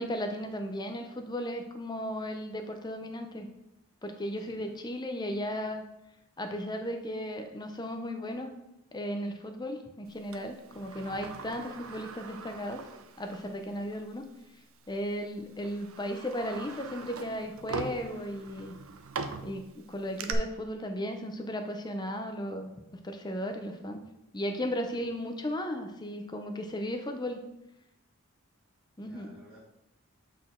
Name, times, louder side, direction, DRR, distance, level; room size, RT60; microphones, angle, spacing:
voice 1, 0.0-3.5 4.0-5.8 6.4-8.5 8.9-12.8 13.2-14.3 14.9-18.7 19.4-22.7 23.0-24.0 24.3-27.4 29.0-29.3, equal, 20° left, 6 dB, 0.6 m, -35 dB
Sliding door, 10.3-13.6 13.9-14.0 14.9-15.1 15.6-20.3, right 4 dB, 65° right, 0.5 m, -41 dB
voice 2, 29.0-29.6, equal, 5° right, -9 dB, 1.3 m, -55 dB
7.7 x 4.2 x 3.7 m, 0.89 s
head